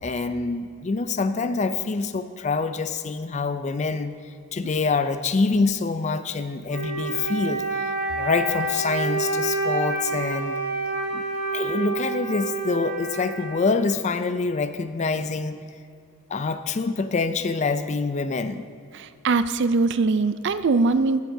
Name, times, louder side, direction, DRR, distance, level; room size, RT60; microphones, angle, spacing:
voice 1, 0.0-4.2 4.5-10.6 11.1-11.2 11.5-15.6 16.3-18.7, left 4 dB, 35° left, 11 dB, 0.4 m, -26 dB
Wind instrument woodwind instrument, 6.7-14.2, right 3 dB, 70° right, 2.5 m, -28 dB
voice 2, 18.9-21.2, right 3 dB, 55° right, 13 dB, 0.4 m, -22 dB
15.5 x 9.1 x 2.7 m, 2.3 s
head